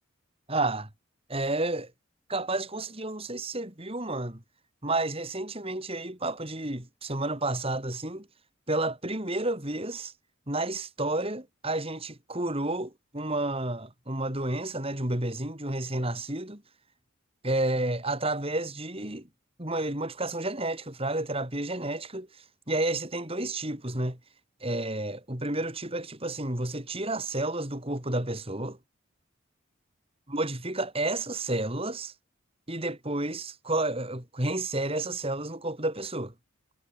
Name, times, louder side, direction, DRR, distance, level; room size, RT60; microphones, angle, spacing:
voice 1, 0.5-0.9 1.3-1.9 2.3-4.4 4.8-8.3 8.7-10.1 10.5-16.6 17.4-19.3 19.6-24.2 24.6-28.8 30.3-32.1 32.7-36.3, right 2 dB, 25° right, 3.7 m, -31 dB
head